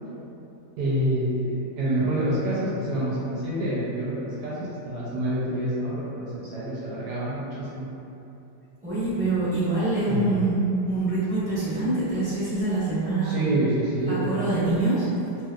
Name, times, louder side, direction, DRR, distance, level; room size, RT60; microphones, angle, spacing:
voice 1, 0.8-7.9 10.1-10.4 13.2-14.7, right 1 dB, 75° right, -8 dB, 1.2 m, -27 dB
voice 2, 8.8-10.6 10.9-13.3 14.1-15.0, right 2 dB, 5° right, -18 dB, 0.7 m, -25 dB
2.8 x 2.7 x 2.3 m, 2.9 s
omnidirectional pair, 1.8 m